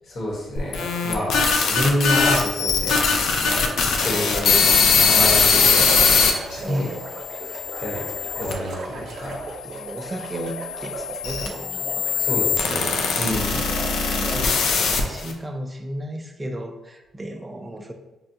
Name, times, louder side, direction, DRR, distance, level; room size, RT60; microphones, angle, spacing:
voice 1, 0.0-3.0 3.3-6.0 6.5-6.9 7.8-8.1 8.4-9.4 12.2-13.6, equal, 55° left, -4 dB, 1.2 m, -28 dB
sound 1, 0.6-6.3 7.0-8.5 9.3-15.3, left 5 dB, 80° left, 0.5 m, -21 dB
sound 2, 5.5-15.3, right 2 dB, 65° right, 0.6 m, -36 dB
voice 2, 6.6-7.0 9.7-12.2 12.7-13.0 13.7-17.9, right 1 dB, 15° right, 5 dB, 0.4 m, -35 dB
5.8 x 2.2 x 2.7 m, 1.0 s
cardioid pair, 130°, 0 cm